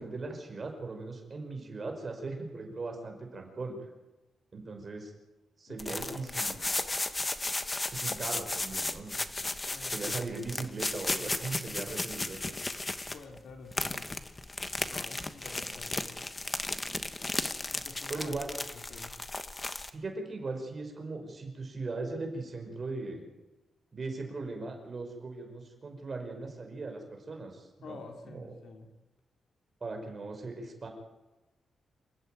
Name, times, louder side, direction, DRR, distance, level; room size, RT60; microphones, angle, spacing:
voice 1, 0.0-3.8 4.5-5.1 5.6-6.6 7.9-9.1 9.9-12.5 18.1-18.5 19.9-23.3 23.9-28.0 28.3-28.5 29.8-30.9, right 3 dB, 30° right, 3 dB, 5.5 m, -39 dB
voice 2, 5.7-6.5 9.7-10.1 13.1-14.2 14.8-16.2 17.7-18.4 18.9-19.2 27.8-28.9, left 4 dB, 70° left, 4 dB, 3.8 m, -49 dB
sound 1, 5.8-13.4 13.7-19.9, left 2 dB, 15° left, 1.2 m, -35 dB
28.0 x 15.5 x 9.4 m, 1.1 s
wide cardioid pair, 165°, 0 cm